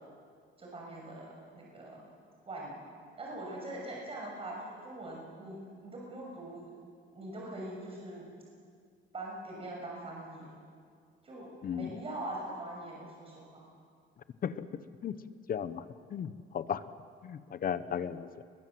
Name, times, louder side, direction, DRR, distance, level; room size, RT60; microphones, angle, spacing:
voice 1, 0.6-2.0 2.5-2.8 3.2-6.7 7.1-8.3 9.1-10.5 11.2-13.6, right 1 dB, 30° right, -2 dB, 6.7 m, -42 dB
voice 2, 11.6-11.9 14.4-14.6 15.0-15.2 15.5-15.8 16.1-16.8 17.2-18.4, left 8 dB, 45° left, 13 dB, 1.1 m, -35 dB
30.0 x 22.0 x 7.8 m, 2.1 s
cardioid pair, 135°, 21 cm